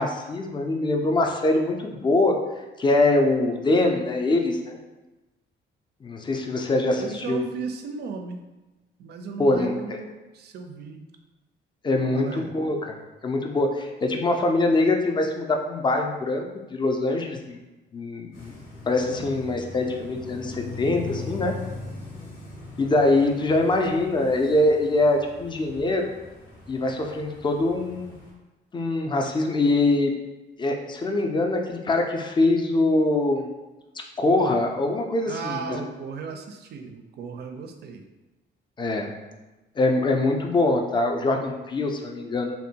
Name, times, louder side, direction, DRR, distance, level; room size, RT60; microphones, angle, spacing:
voice 1, 0.0-2.4 2.8-4.8 6.0-7.4 9.4-10.0 11.8-17.6 17.9-18.5 18.9-21.6 22.8-26.1 26.7-28.1 28.7-30.1 30.6-33.4 34.2-35.8 38.8-39.1 39.8-42.5, left 2 dB, 25° left, 3 dB, 0.4 m, -23 dB
voice 2, 7.0-8.4 9.0-11.0 12.0-12.5 35.3-38.0, right 5 dB, 55° right, 5 dB, 0.4 m, -35 dB
sound 1, 18.3-28.3, left 3 dB, 85° left, 0.9 m, -40 dB
2.6 x 2.1 x 2.7 m, 1.1 s
cardioid pair, 90°, 20 cm